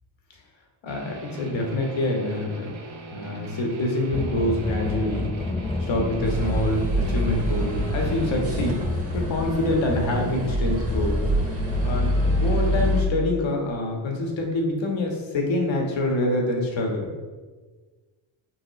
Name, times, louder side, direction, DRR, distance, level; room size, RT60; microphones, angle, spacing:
voice 1, 0.8-2.7 3.1-5.2 5.8-8.8 9.1-11.1 11.8-12.1 12.4-17.1, left 1 dB, 65° left, 1 dB, 1.5 m, -26 dB
Guitar, 0.9-8.5, right 3 dB, 70° right, 1.4 m, -41 dB
sound 1, 4.1-13.0, left 2 dB, 15° left, 0.3 m, -30 dB
sound 2, 6.2-13.0, equal, 30° right, 1.5 m, -26 dB
6.2 x 5.2 x 3.1 m, 1.4 s
cardioid pair, 95°, 49 cm